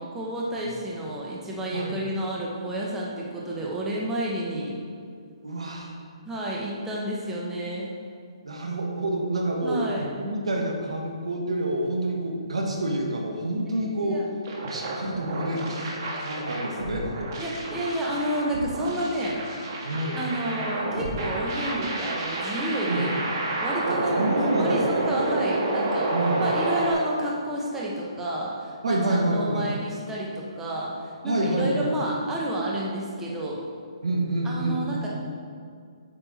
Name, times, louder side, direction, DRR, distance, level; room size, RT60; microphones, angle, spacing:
voice 1, 0.0-4.7 6.2-7.9 9.6-10.1 13.6-14.3 17.4-19.4 20.1-23.2 23.6-26.1 26.4-33.6 34.4-35.1, right 1 dB, 10° right, -4 dB, 1.0 m, -30 dB
voice 2, 5.4-5.9 8.4-14.2 14.7-16.0 16.2-17.3 18.9-19.0 19.8-20.2 22.9-23.1 23.9-25.1 26.1-26.5 28.8-29.7 31.2-31.9 34.0-35.0, right 1 dB, 80° right, 1 dB, 1.5 m, -28 dB
sound 1, 14.4-26.9, right 2 dB, 40° right, 1.7 m, -29 dB
8.3 x 5.5 x 4.1 m, 2.2 s
hypercardioid pair, 155°, 3 cm